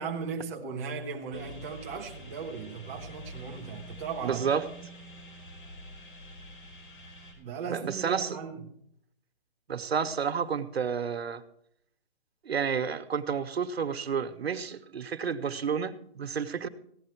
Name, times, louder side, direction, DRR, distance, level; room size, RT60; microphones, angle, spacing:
voice 1, 0.0-4.4 7.4-8.8, right 5 dB, 15° right, 1.1 m, -37 dB
sound 1, 1.3-7.3, equal, 55° left, 4.8 m, -46 dB
voice 2, 4.2-4.7 7.7-8.3 9.7-11.4 12.4-16.7, right 6 dB, 90° right, 1.4 m, -30 dB
16.5 x 11.0 x 4.6 m
hypercardioid pair, 175°, 30 cm